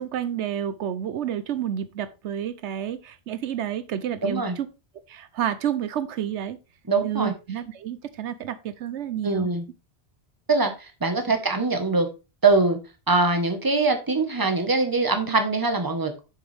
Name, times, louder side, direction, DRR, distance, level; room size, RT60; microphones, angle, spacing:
voice 1, 0.0-4.7 5.1-6.6 7.0-9.5, right 10 dB, 85° right, 13 dB, 1.0 m, -30 dB
voice 2, 4.2-4.6 6.9-7.3 9.2-9.7 10.5-12.1 12.4-12.8 13.1-16.2, right 3 dB, 20° right, 6 dB, 1.2 m, -23 dB
7.1 x 7.0 x 3.4 m, 0.29 s
omnidirectional pair, 1.1 m